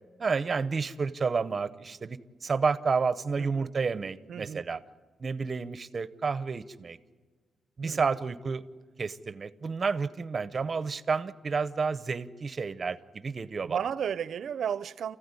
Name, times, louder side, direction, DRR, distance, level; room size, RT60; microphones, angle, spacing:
voice 1, 0.2-4.8 5.2-7.0 7.8-8.6 9.0-13.8, right 5 dB, 35° right, 0.8 m, -30 dB
voice 2, 3.4-3.7 4.3-4.6 7.8-8.1 13.6-15.2, right 8 dB, 65° right, 0.7 m, -33 dB
29.0 x 15.5 x 9.8 m
wide cardioid pair, 150°, 0 cm